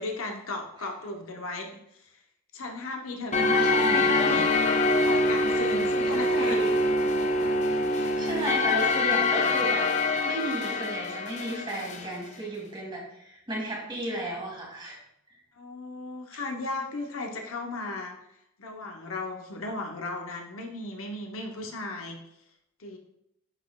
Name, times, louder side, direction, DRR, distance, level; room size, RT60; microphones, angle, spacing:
voice 1, 0.0-1.7 2.1-2.2 2.5-4.5 5.0-6.7 8.3-8.5 15.5-18.2 18.6-22.2 22.8-23.0, left 2 dB, 65° left, 2 dB, 0.8 m, -36 dB
sound 1, 3.3-12.1, left 2 dB, 30° left, 0.4 m, -25 dB
voice 2, 3.6-4.4 6.1-6.8 7.9-9.9 10.2-15.0, right 1 dB, 20° right, -3 dB, 1.8 m, -33 dB
9.9 x 4.1 x 2.3 m, 0.78 s
head